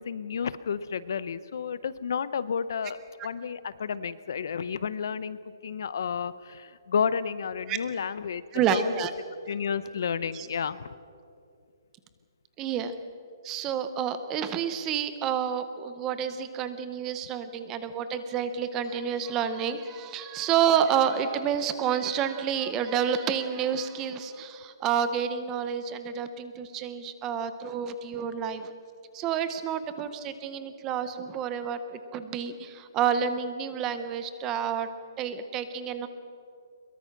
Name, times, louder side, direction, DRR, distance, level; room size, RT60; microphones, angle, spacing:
voice 1, 0.0-3.0 3.2-8.4 8.7-9.1 9.5-10.9, left 6 dB, 50° left, 16 dB, 0.7 m, -31 dB
voice 2, 8.5-9.1 10.3-10.5 12.6-12.9 13.4-28.7 29.1-34.9 35.2-36.1, right 8 dB, 15° right, 11 dB, 0.6 m, -29 dB
22.0 x 22.0 x 5.9 m, 2.5 s
hypercardioid pair, 175°, 2 cm